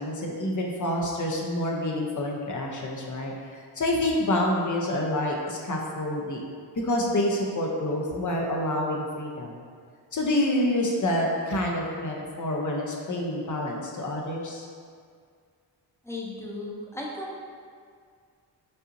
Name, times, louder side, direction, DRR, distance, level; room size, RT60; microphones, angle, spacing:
voice 1, 0.0-6.4 6.8-9.6 10.1-14.7, left 1 dB, 45° left, -1 dB, 0.8 m, -27 dB
voice 2, 16.0-17.4, left 1 dB, 5° left, -3 dB, 0.8 m, -36 dB
5.4 x 2.8 x 2.7 m, 2.1 s
cardioid pair, 65°, 43 cm